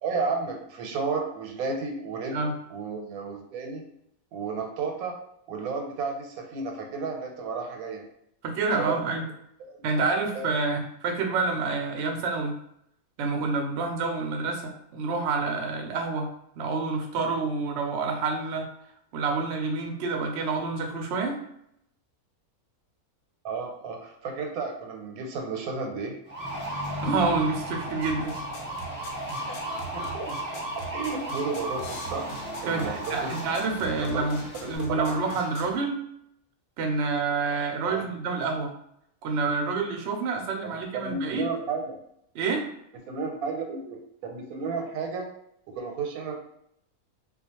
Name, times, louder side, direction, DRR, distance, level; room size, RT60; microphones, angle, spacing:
voice 1, 0.0-2.4 2.7-3.8 4.3-5.2 5.5-8.0 8.8-9.0 9.7-9.8 10.1-10.5 23.4-26.1 29.9-30.3 30.9-32.3 32.6-33.3 33.9-34.2 34.9-35.2 37.8-38.0 40.6-42.0 43.1-45.3 45.7-46.3, right 4 dB, 85° right, 2 dB, 1.1 m, -32 dB
voice 2, 8.4-9.2 9.8-12.6 13.2-16.3 16.6-18.7 19.1-21.4 27.0-28.3 32.7-36.0 36.8-38.7 39.2-41.5 42.3-42.6, right 4 dB, 65° right, 1 dB, 0.7 m, -28 dB
sound 1, 26.3-34.8, right 1 dB, 10° right, 0.8 m, -35 dB
sound 2, 28.0-35.8, equal, 85° left, 1.1 m, -42 dB
2.4 x 2.2 x 2.8 m, 0.74 s
omnidirectional pair, 1.5 m